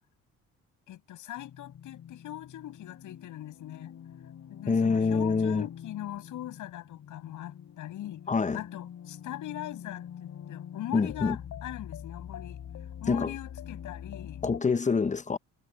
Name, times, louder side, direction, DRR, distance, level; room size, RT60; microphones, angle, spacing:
voice 1, 0.9-3.9 4.5-8.2 8.5-12.6 13.0-14.4, left 13 dB, 80° left, 7.4 m, -41 dB
Parallel Universe, 1.4-14.6, left 9 dB, 60° left, 5.4 m, -44 dB
voice 2, 4.7-5.7 8.3-8.6 10.9-11.4 13.1-13.3 14.4-15.4, left 5 dB, 25° left, 0.8 m, -26 dB
cardioid pair, 90°, 30 cm